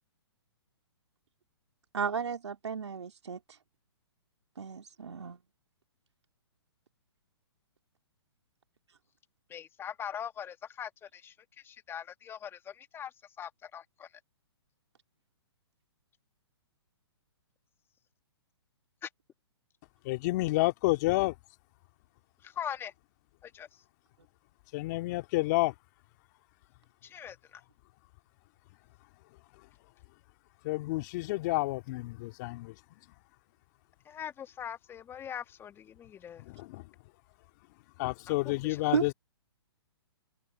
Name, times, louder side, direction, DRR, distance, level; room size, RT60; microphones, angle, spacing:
voice 1, 1.9-3.4 4.6-5.4 38.9-39.0, right 6 dB, 80° right, 2.7 m, -33 dB
voice 2, 9.5-11.3 11.6-13.1 13.4-14.1 19.0-19.1 22.4-22.9 23.4-23.7 27.0-27.4 34.1-36.4 38.3-38.8, left 9 dB, 15° left, 1.4 m, -41 dB
voice 3, 20.1-21.3 24.7-25.7 30.6-32.7 36.5-36.8 38.0-39.1, left 21 dB, 40° left, 2.0 m, -29 dB
hypercardioid pair, 130°, 14 cm